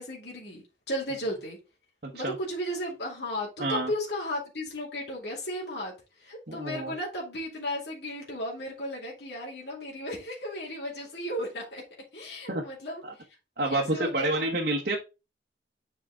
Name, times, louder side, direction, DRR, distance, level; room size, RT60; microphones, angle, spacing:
voice 1, 0.0-1.6 2.1-11.8 12.1-13.2 13.6-14.5, equal, 70° left, -2 dB, 2.5 m, -35 dB
voice 2, 2.0-2.3 3.6-3.9 6.5-6.9 12.5-12.6 13.0-13.1 13.6-15.0, right 2 dB, 55° right, 0 dB, 1.2 m, -28 dB
7.6 x 4.9 x 3.6 m, 0.28 s
head